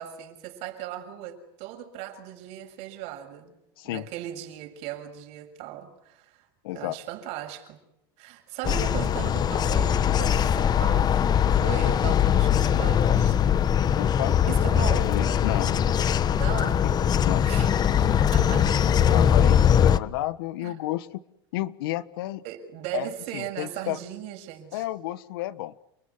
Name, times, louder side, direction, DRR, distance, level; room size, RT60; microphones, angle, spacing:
voice 1, 0.0-3.5 3.8-6.5 6.7-7.8 8.2-13.6 14.5-15.2 16.3-17.1 17.4-18.8 20.6-20.8 22.4-24.8, right 11 dB, 65° right, 6.8 m, -38 dB
voice 2, 3.8-4.1 6.6-6.9 11.8-11.9 13.9-16.1 17.2-17.4 19.1-21.1 21.5-22.4 22.9-24.0 24.7-25.7, left 15 dB, 80° left, 1.3 m, -32 dB
sound 1, 8.6-20.0, left 9 dB, 35° left, 1.1 m, -21 dB
30.0 x 20.5 x 9.7 m
supercardioid pair, 105°, 12 cm